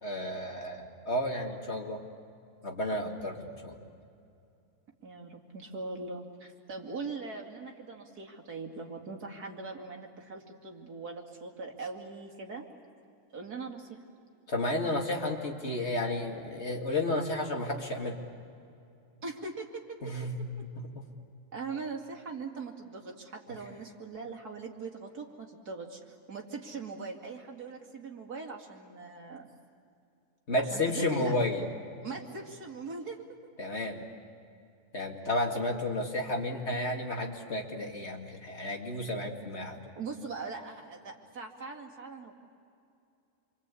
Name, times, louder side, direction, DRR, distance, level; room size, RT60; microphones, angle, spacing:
voice 1, 0.0-2.0 2.6-3.8 14.5-18.2 20.0-21.1 30.5-31.7 33.6-34.1 34.9-39.9, left 1 dB, 45° left, 1 dB, 2.5 m, -32 dB
voice 2, 5.0-12.7 13.3-14.0 19.2-20.1 20.6-20.7 21.5-29.5 30.7-31.3 32.0-33.2 39.9-42.3, right 4 dB, 85° right, 1 dB, 3.0 m, -41 dB
27.5 x 24.5 x 8.4 m, 2.6 s
omnidirectional pair, 1.6 m